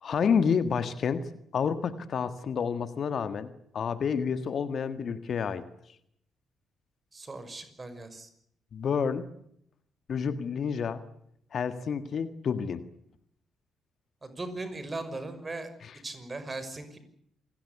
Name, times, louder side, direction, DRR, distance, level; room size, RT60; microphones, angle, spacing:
voice 1, 0.0-5.6 8.7-9.3 10.1-11.0 11.5-12.8 15.8-15.9, left 6 dB, 50° left, 12 dB, 1.6 m, -29 dB
voice 2, 7.1-8.3 14.2-15.7 16.0-17.0, right 2 dB, 30° right, 11 dB, 5.9 m, -38 dB
27.5 x 19.0 x 8.3 m, 0.72 s
figure-of-eight pair, 40°, 0 cm